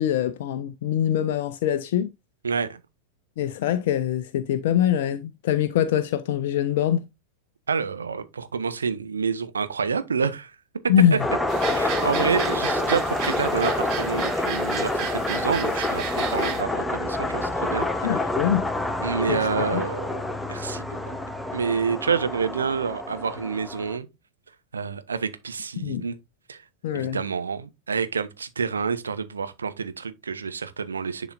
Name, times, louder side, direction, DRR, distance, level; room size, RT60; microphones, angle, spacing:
voice 1, 0.0-2.1 3.4-7.1 10.9-11.2 18.0-18.6 19.3-19.4 19.7-19.8 25.8-26.0 26.8-27.2, left 10 dB, 55° left, 0.5 m, -23 dB
voice 2, 2.4-2.8 7.7-10.5 11.1-11.2 11.7-18.2 19.0-20.2 20.5-21.0 21.5-24.1 24.7-26.2 26.5-26.6 26.9-31.3, right 5 dB, 70° right, 0.8 m, -28 dB
sound 1, 11.2-24.0, left 2 dB, 5° left, 0.6 m, -27 dB
sound 2, 11.5-16.6, right 8 dB, 40° right, 1.2 m, -33 dB
10.5 x 4.0 x 2.6 m
figure-of-eight pair, 90°, 0 cm